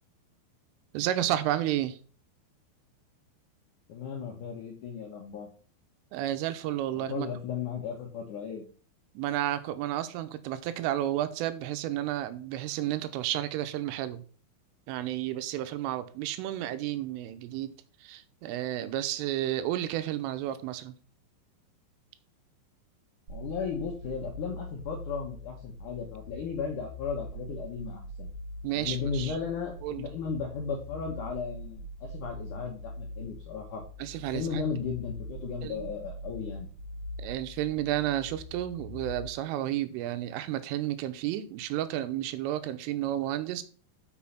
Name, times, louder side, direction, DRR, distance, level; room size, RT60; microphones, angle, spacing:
voice 1, 0.9-2.0 6.1-7.3 9.2-14.2 14.9-17.7 18.0-20.9 28.6-29.4 29.8-30.1 34.0-34.6 35.6-35.9 37.2-43.6, right 13 dB, 90° right, 3.4 m, -31 dB
voice 2, 3.9-5.5 6.9-8.6 23.3-28.3 28.7-33.8 34.3-36.7, left 6 dB, 80° left, 1.8 m, -35 dB
sound 1, 23.3-39.3, left 1 dB, 70° right, 1.6 m, -42 dB
6.4 x 6.3 x 5.7 m
omnidirectional pair, 5.6 m